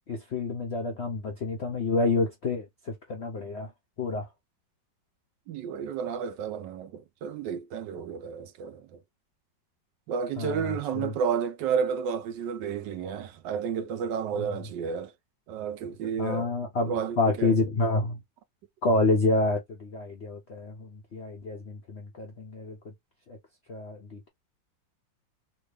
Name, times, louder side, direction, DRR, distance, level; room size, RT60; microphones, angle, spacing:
voice 1, 0.1-3.7 4.0-4.3 10.4-11.1 16.2-18.2 18.8-22.9 23.3-23.4 23.7-24.3, left 3 dB, 65° left, 0.6 m, -28 dB
voice 2, 5.5-9.0 10.1-15.1 15.5-16.5 16.9-17.6, right 7 dB, 75° right, 1.2 m, -31 dB
3.5 x 2.3 x 3.2 m
omnidirectional pair, 2.1 m